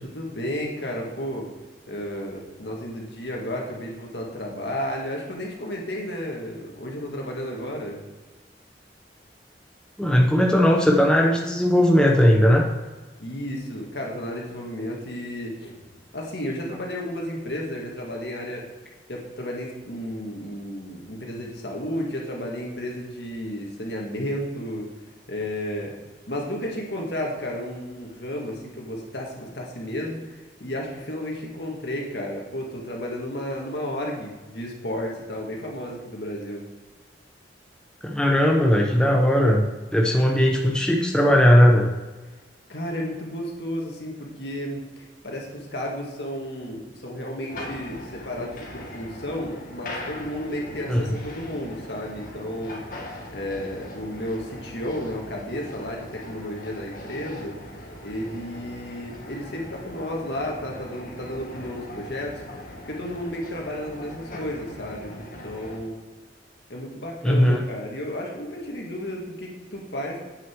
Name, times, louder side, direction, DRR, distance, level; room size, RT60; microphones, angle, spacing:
voice 1, 0.0-1.5 1.9-8.0 13.2-15.8 16.1-18.6 19.1-24.9 25.3-26.0 26.3-36.6 42.7-52.8 53.3-57.6 58.0-62.4 62.9-66.0 66.7-70.2, equal, 65° left, -1 dB, 1.9 m, -32 dB
voice 2, 10.0-12.7 38.0-41.9 50.9-51.0 67.2-67.6, equal, 5° left, 0 dB, 0.7 m, -18 dB
sound 1, 47.5-65.8, left 1 dB, 50° left, 1.7 m, -40 dB
8.3 x 6.7 x 4.7 m, 1.2 s
head